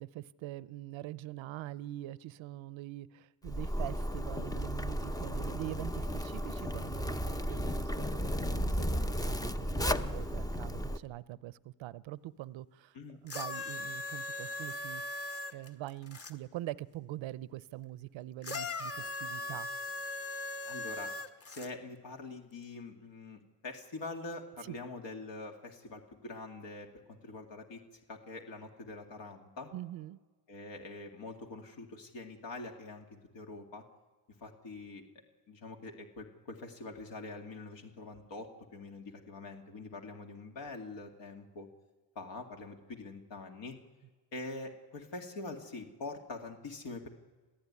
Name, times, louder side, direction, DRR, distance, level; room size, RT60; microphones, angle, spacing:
voice 1, 0.0-19.8 24.7-24.8 29.7-30.2, right 15 dB, 70° right, 0.8 m, -44 dB
Zipper (clothing), 3.4-11.0, equal, 10° left, 0.7 m, -34 dB
sound 1, 13.3-16.3 18.4-21.7 22.6-22.7, left 2 dB, 30° left, 1.7 m, -39 dB
voice 2, 20.7-21.1 21.5-29.7 30.5-33.8 34.4-35.0 35.5-41.7 42.2-43.8 44.3-47.1, left 3 dB, 60° left, 2.3 m, -45 dB
27.0 x 15.5 x 9.7 m
cardioid pair, 105°, 48 cm